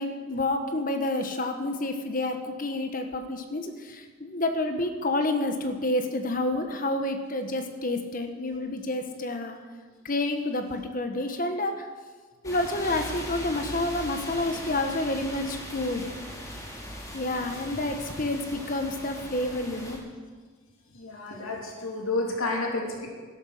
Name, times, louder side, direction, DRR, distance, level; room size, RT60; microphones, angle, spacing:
voice 1, 0.0-9.6 10.0-11.9 12.4-16.1 17.1-20.0, left 2 dB, 40° left, 6 dB, 1.2 m, -29 dB
sound 1, 12.4-20.0, equal, 15° left, 2.1 m, -39 dB
voice 2, 20.9-23.1, left 2 dB, 80° left, -1 dB, 2.9 m, -30 dB
12.5 x 11.5 x 6.6 m, 1.5 s
head